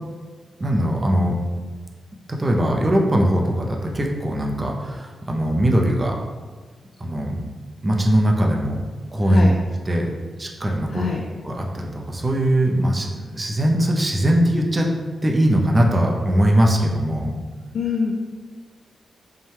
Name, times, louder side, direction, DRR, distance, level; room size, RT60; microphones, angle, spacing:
voice 1, 0.6-1.3 2.3-6.1 7.0-7.4 7.8-8.8 9.1-9.5 9.9-10.1 10.4-11.0 11.4-14.9 15.2-17.3, equal, 20° right, 0 dB, 0.4 m, -20 dB
voice 2, 9.3-9.6 10.9-11.2 17.7-18.1, left 4 dB, 75° left, -1 dB, 0.4 m, -24 dB
5.4 x 2.2 x 3.3 m, 1.4 s
wide cardioid pair, 145°, 0 cm